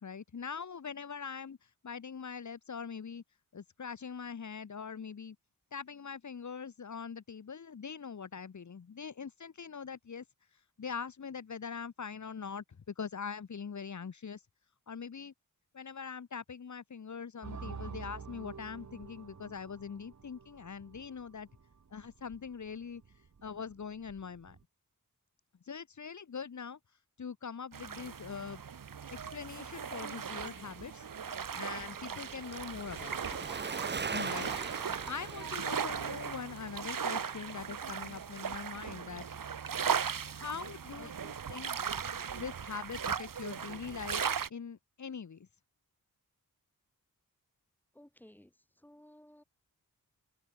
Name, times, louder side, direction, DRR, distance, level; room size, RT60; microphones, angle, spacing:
voice 1, 0.0-3.2 3.5-5.4 5.7-10.2 10.8-14.4 14.9-15.3 15.7-21.5 21.9-23.0 23.4-24.6 25.7-26.8 27.2-28.6 29.1-31.1 31.5-33.5 34.1-34.5 35.1-39.3 40.3-41.1 41.5-41.7 42.3-44.2 44.5-45.5, left 6 dB, 55° left, 2.1 m, -42 dB
sound 1, 17.4-24.6, right 5 dB, 55° right, 4.7 m, -49 dB
sound 2, 27.7-44.5, right 7 dB, 70° right, 2.6 m, -38 dB
Bicycle, 30.1-38.5 38.8-38.9, right 5 dB, 30° right, 0.8 m, -43 dB
voice 2, 41.0-41.4 47.9-48.5 48.8-49.4, left 1 dB, 5° left, 4.7 m, -56 dB
open air
wide cardioid pair, 175°, 34 cm